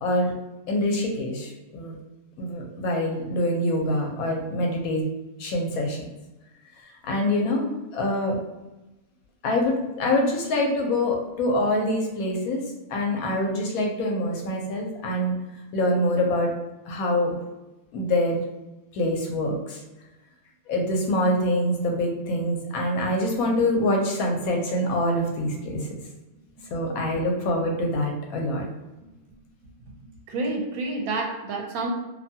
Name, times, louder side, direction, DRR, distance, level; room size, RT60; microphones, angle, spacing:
voice 1, 0.0-0.3 0.7-1.9 2.4-5.0 5.4-6.0 7.0-8.3 9.4-12.6 12.9-15.3 15.7-16.5 16.9-17.3 17.9-18.4 18.9-19.8 20.7-25.9 26.7-28.6, left 1 dB, 75° left, 1 dB, 1.0 m, -25 dB
voice 2, 26.6-26.9 29.0-29.4 29.8-31.9, right 3 dB, 80° right, 2 dB, 1.1 m, -31 dB
2.6 x 2.2 x 2.7 m, 1.0 s
omnidirectional pair, 1.5 m